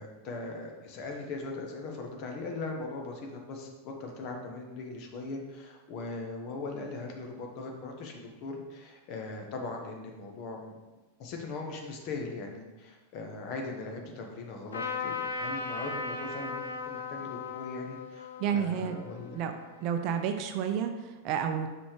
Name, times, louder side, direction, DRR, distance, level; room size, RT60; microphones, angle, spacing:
voice 1, 0.0-10.8 11.2-19.3, left 3 dB, 40° left, 1 dB, 1.3 m, -40 dB
Trumpet, 14.7-20.2, left 4 dB, 70° left, 1.0 m, -38 dB
voice 2, 18.4-19.0 19.3-19.5 19.8-21.7, right 8 dB, 40° right, 7 dB, 0.6 m, -30 dB
6.1 x 5.0 x 4.7 m, 1.2 s
figure-of-eight pair, 90°, 0 cm